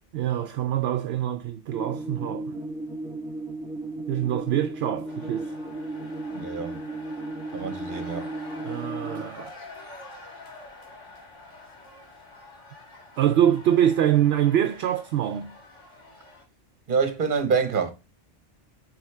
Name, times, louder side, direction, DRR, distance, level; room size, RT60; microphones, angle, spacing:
voice 1, 0.1-2.6 4.1-5.5 8.6-9.6 13.2-15.5, right 10 dB, 65° right, 0.8 m, -24 dB
sound 1, 1.7-9.2, right 2 dB, 5° right, 0.7 m, -35 dB
sound 2, 5.1-16.4, left 2 dB, 80° left, 2.0 m, -46 dB
voice 2, 6.3-6.8 7.5-8.3 16.9-17.9, right 5 dB, 45° right, 1.1 m, -26 dB
8.2 x 3.5 x 3.3 m
omnidirectional pair, 1.2 m